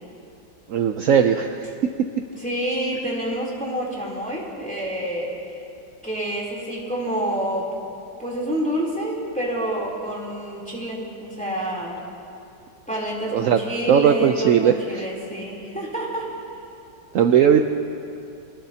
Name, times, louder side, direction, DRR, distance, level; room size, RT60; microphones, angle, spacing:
voice 1, 0.7-1.7 13.3-13.6 13.9-15.0 17.1-17.6, right 8 dB, 70° right, 6 dB, 0.7 m, -18 dB
voice 2, 2.4-5.3 6.0-7.7 8.2-12.0 12.9-16.4, right 1 dB, 5° left, -5 dB, 3.1 m, -28 dB
24.0 x 19.0 x 2.8 m, 2.6 s
omnidirectional pair, 2.0 m